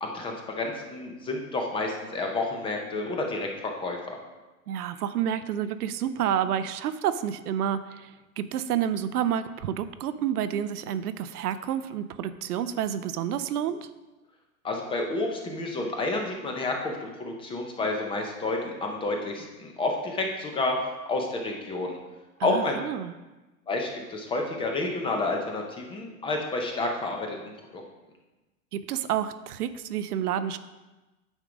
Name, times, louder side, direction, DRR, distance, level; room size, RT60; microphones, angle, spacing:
voice 1, 0.0-3.5 3.8-4.2 14.6-20.8 21.1-22.0 22.4-22.8 23.7-27.4 27.7-27.8, left 2 dB, 10° left, 2 dB, 0.5 m, -30 dB
voice 2, 4.7-13.9 22.4-23.1 28.7-30.6, right 9 dB, 80° right, 12 dB, 0.6 m, -29 dB
8.9 x 3.6 x 5.0 m, 1.1 s
hypercardioid pair, 130°, 46 cm